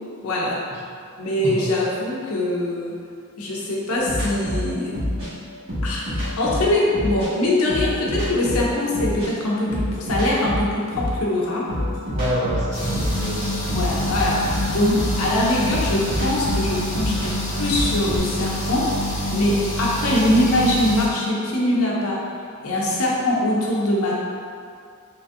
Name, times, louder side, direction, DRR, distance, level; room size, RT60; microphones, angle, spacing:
voice 1, 0.2-0.6 1.2-3.0 3.4-5.0 5.8-11.7 13.7-22.3 22.6-24.1, left 1 dB, 90° left, -4 dB, 0.6 m, -22 dB
sound 1, 4.1-7.3 7.6-11.2 11.7-18.2, left 1 dB, 65° right, 1.5 m, -27 dB
voice 2, 12.1-13.6, right 1 dB, 35° right, -4 dB, 0.4 m, -27 dB
sound 2, 12.7-21.1, left 1 dB, 50° left, 0.9 m, -27 dB
3.0 x 2.6 x 2.4 m, 2.3 s
head